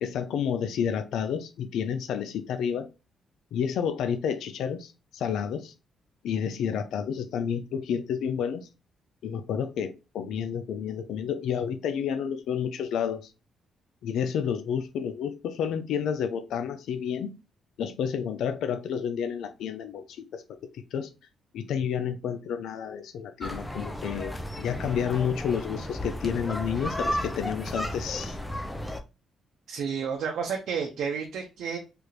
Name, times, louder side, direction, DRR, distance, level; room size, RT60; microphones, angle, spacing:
voice 1, 0.0-2.9 3.5-5.7 6.2-8.7 9.2-13.3 14.0-17.3 17.8-21.1 21.5-24.3 24.6-28.4, left 7 dB, 80° left, 0.3 m, -30 dB
sound 1, 23.4-29.0, left 1 dB, 10° left, 0.5 m, -33 dB
voice 2, 29.7-31.8, right 6 dB, 75° right, 0.6 m, -31 dB
3.3 x 2.4 x 3.0 m
cardioid pair, 105°, 0 cm